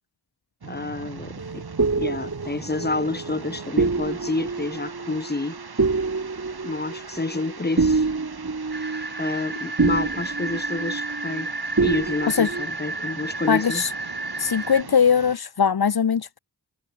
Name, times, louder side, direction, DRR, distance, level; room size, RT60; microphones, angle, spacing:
sound 1, 0.6-15.4, right 5 dB, 65° right, 3.6 m, -41 dB
voice 1, 0.7-1.6 2.0-5.6 6.6-8.1 9.2-11.5 11.8-13.8, left 3 dB, 25° left, 2.0 m, -29 dB
sound 2, 1.4-11.5 11.8-12.6, right 4 dB, 45° right, 3.5 m, -27 dB
sound 3, 8.7-14.8, right 2 dB, 25° right, 2.8 m, -32 dB
voice 2, 13.5-13.9 14.4-16.4, left 7 dB, 65° left, 1.3 m, -20 dB
cardioid pair, 55°, 40 cm